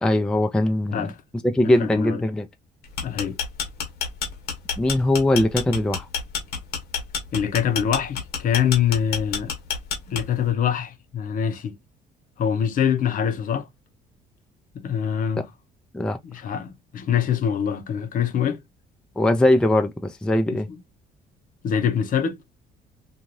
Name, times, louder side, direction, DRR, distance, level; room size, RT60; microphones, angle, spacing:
voice 1, 0.0-1.1 1.4-2.5 4.8-6.1 15.9-16.2 19.2-20.7, left 1 dB, 5° left, 0.4 m, -21 dB
voice 2, 1.8-2.2 3.0-3.4 7.3-9.5 10.1-11.7 12.4-13.7 14.8-15.5 16.2-18.6 20.5-20.6 21.6-22.4, left 8 dB, 55° left, 0.7 m, -24 dB
sound 1, 2.8-10.5, left 6 dB, 75° left, 1.1 m, -29 dB
2.6 x 2.4 x 3.0 m
cardioid pair, 110°, 17 cm